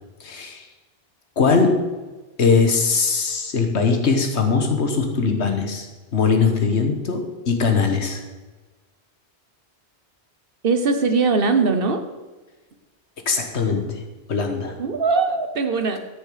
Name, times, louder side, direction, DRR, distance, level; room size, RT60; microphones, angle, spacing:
voice 1, 0.2-0.7 1.4-1.9 2.4-5.9 6.1-8.2 13.3-14.0 14.3-14.8, left 4 dB, 80° left, 5 dB, 1.6 m, -20 dB
voice 2, 10.6-12.0 14.8-16.0, right 4 dB, 55° right, 8 dB, 1.2 m, -20 dB
13.0 x 6.9 x 5.0 m, 1.2 s
omnidirectional pair, 1.1 m